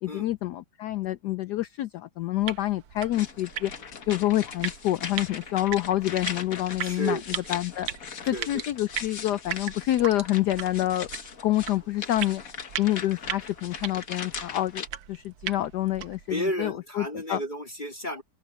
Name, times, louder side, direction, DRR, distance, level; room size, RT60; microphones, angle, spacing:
voice 1, 0.0-3.7 4.1-7.2 7.5-7.9 8.3-11.1 11.4-12.4 12.8-17.4, left 14 dB, 75° left, 0.9 m, -27 dB
sound 1, 2.4-16.3, right 10 dB, 70° right, 1.7 m, -39 dB
sound 2, 3.1-14.9, left 6 dB, 45° left, 1.6 m, -39 dB
voice 2, 6.8-7.3 8.3-8.6 16.3-18.2, equal, 20° left, 2.7 m, -32 dB
open air
omnidirectional pair, 2.3 m